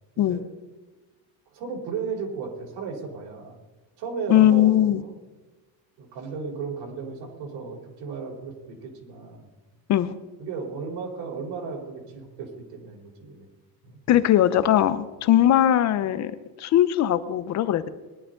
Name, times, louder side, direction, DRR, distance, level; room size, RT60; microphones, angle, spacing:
voice 1, 1.5-3.6 4.0-5.1 6.0-9.5 10.4-13.5 13.8-14.0, right 5 dB, 70° right, -1 dB, 4.2 m, -35 dB
voice 2, 4.3-5.0 9.9-10.1 14.1-17.9, left 12 dB, 40° left, 14 dB, 0.8 m, -20 dB
21.0 x 11.5 x 3.9 m, 1.2 s
cardioid pair, 170°, 45 cm